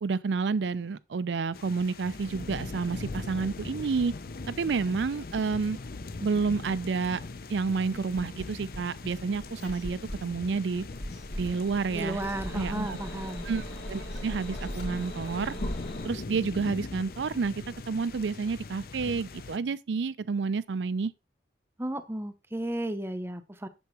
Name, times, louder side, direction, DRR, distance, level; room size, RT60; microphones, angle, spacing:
voice 1, 0.0-4.1 4.5-5.8 6.2-7.2 7.5-10.9 11.4-12.2 12.5-13.0 13.4-15.6 16.0-21.1, right 4 dB, 80° right, 0.4 m, -30 dB
sound 1, 1.5-19.6, left 3 dB, 55° left, 0.6 m, -41 dB
sound 2, 7.9-8.8 9.4-10.2 10.9-11.5 12.1-12.8 13.8-14.9, equal, 70° left, 2.7 m, -40 dB
sound 3, 10.0-16.1, left 1 dB, 90° left, 2.3 m, -39 dB
voice 2, 11.9-13.5 21.8-23.7, right 1 dB, 15° right, 0.6 m, -34 dB
8.1 x 6.9 x 3.0 m
head